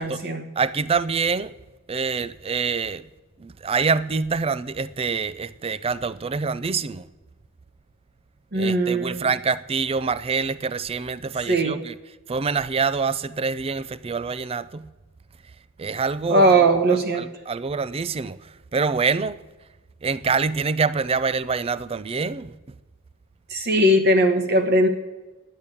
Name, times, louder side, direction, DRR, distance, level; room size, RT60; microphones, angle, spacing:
voice 1, 0.0-0.5 8.5-9.3 11.5-11.8 16.3-17.3 23.5-24.9, right 1 dB, 50° right, 1.1 m, -19 dB
voice 2, 0.6-1.5 1.9-3.1 3.4-7.1 8.5-11.9 12.3-14.9 15.8-16.5 17.2-19.4 20.0-22.5, right 5 dB, 25° right, 0.4 m, -25 dB
11.5 x 8.9 x 8.3 m
head